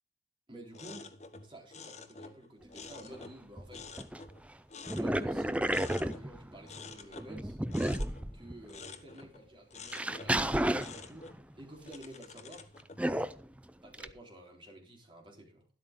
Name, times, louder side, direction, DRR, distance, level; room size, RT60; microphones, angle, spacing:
voice 1, 0.5-1.1 1.5-3.9 4.9-7.6 8.3-12.7 13.8-15.7, right 1 dB, 25° right, 0 dB, 3.7 m, -51 dB
sound 1, 0.7-3.4 3.7-5.4 5.7-6.3 6.6-9.4 9.7-10.4 10.7-13.0, left 4 dB, 40° left, 1.3 m, -49 dB
sound 2, 3.1-3.2 3.6-4.3 4.9-6.8 7.2-8.7 9.2-9.3 9.9-11.4 13.0-13.5 13.9-14.1, right 1 dB, 5° right, 0.4 m, -32 dB
12.5 x 11.5 x 3.7 m, 0.37 s
head